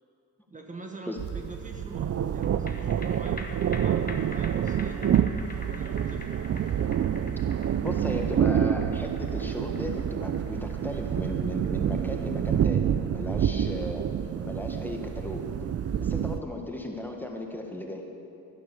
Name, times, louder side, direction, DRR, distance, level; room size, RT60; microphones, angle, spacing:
voice 1, 0.5-5.1 5.6-6.4, right 2 dB, 25° right, 2 dB, 1.3 m, -45 dB
sound 1, 1.2-16.4, right 9 dB, 50° right, 0.5 m, -28 dB
sound 2, 2.4-15.1 15.4-15.5, left 3 dB, 30° left, 1.4 m, -46 dB
voice 2, 7.8-14.1 14.4-15.5 16.0-18.1, left 1 dB, 5° left, 2 dB, 1.5 m, -36 dB
12.0 x 11.5 x 6.9 m, 2.9 s
cardioid pair, 90°, 31 cm